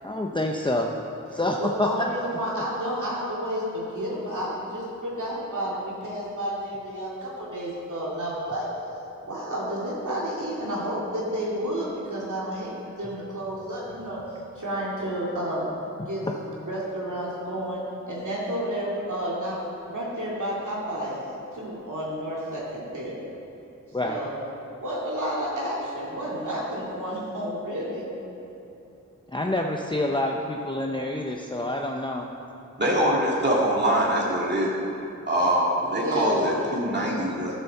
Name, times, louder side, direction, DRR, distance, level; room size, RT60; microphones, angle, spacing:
voice 1, 0.0-0.9 1.3-2.1 16.0-16.1 23.9-24.2 29.3-32.3, left 1 dB, 15° left, 1 dB, 0.7 m, -27 dB
voice 2, 1.3-8.7 9.3-14.2 14.6-15.7 16.1-19.6 19.9-21.2 21.5-23.2 24.0-24.3 24.8-28.0 35.8-36.6, equal, 75° right, -6 dB, 2.4 m, -31 dB
voice 3, 32.8-34.7 35.3-37.5, right 1 dB, 35° right, -5 dB, 2.4 m, -23 dB
11.5 x 7.2 x 6.6 m, 3.0 s
wide cardioid pair, 70°, 31 cm